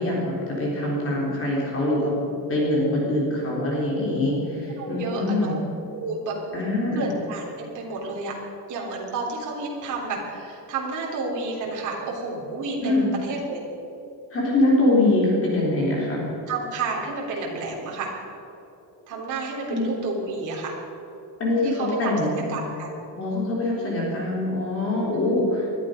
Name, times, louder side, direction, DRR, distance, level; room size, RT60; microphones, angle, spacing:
voice 1, 0.0-2.2 2.5-5.6 6.5-7.1 12.8-13.1 14.3-16.2 19.7-19.9 21.4-22.4 23.2-25.7, left 1 dB, 30° left, -4 dB, 4.0 m, -23 dB
voice 2, 4.6-5.6 5.9-6.3 7.0-8.4 8.7-13.6 16.5-18.1 19.1-20.8 21.6-23.0 25.0-25.5, right 3 dB, 45° right, -2 dB, 3.7 m, -31 dB
20.5 x 13.0 x 5.3 m, 2.9 s
cardioid pair, 175°, 42 cm